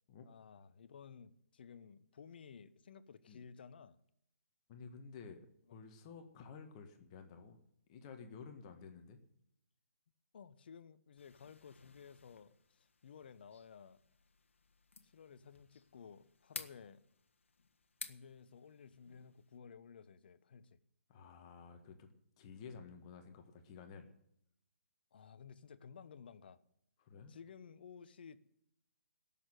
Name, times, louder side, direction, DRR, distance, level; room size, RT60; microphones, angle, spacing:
voice 1, 0.2-4.0 5.7-5.8 10.3-14.0 15.0-17.0 18.0-20.8 25.1-26.6 27.3-28.4, left 6 dB, 45° left, 1.0 m, -55 dB
voice 2, 4.7-5.4 5.7-7.6 7.9-9.2 15.3-15.4 21.1-22.1 22.4-24.1 27.0-27.4, left 5 dB, 25° left, 1.5 m, -52 dB
sound 1, 11.2-19.6, left 4 dB, 60° left, 1.5 m, -55 dB
18.0 x 7.0 x 9.2 m
figure-of-eight pair, 135°, 7 cm